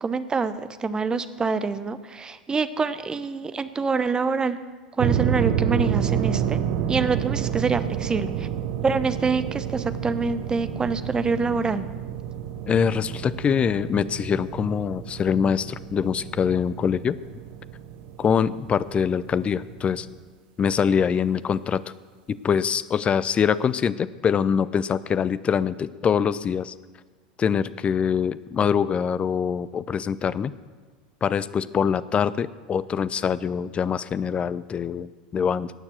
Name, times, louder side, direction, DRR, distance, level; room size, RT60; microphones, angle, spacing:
voice 1, 0.0-4.6 5.0-6.6 6.9-8.5 8.8-11.9, right 4 dB, 15° right, 12 dB, 0.8 m, -26 dB
sound 1, 5.0-20.2, right 9 dB, 50° right, 0.9 m, -29 dB
voice 2, 12.7-17.2 18.2-20.1 20.6-21.8 22.3-26.7 27.4-30.5 31.2-35.7, left 7 dB, 25° left, 17 dB, 0.5 m, -24 dB
18.5 x 7.1 x 6.3 m, 1.4 s
figure-of-eight pair, 85°, 5 cm